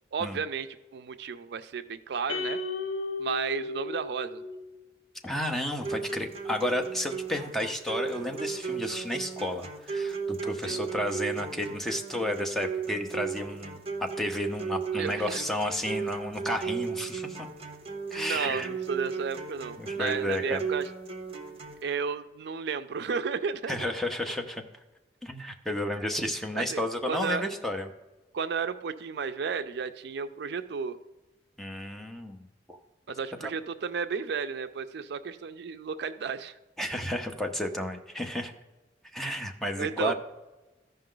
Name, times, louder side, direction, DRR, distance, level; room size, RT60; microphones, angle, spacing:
voice 1, 0.1-2.6 3.2-4.4 10.6-10.8 14.9-15.4 18.2-20.9 21.8-23.9 26.5-26.8 27.1-27.4 28.3-31.0 33.1-36.6 39.8-40.1, right 5 dB, 65° right, 11 dB, 0.4 m, -33 dB
sound 1, 2.3-4.8, left 3 dB, 90° left, 0.8 m, -34 dB
voice 2, 5.2-17.5 18.1-18.7 19.8-20.6 23.7-24.6 25.2-27.9 31.6-32.8 36.8-38.5 39.1-40.1, left 1 dB, ahead, 3 dB, 0.7 m, -32 dB
sound 2, 5.8-21.8, right 5 dB, 35° right, 0.8 m, -35 dB
14.5 x 5.4 x 3.8 m, 1.1 s
head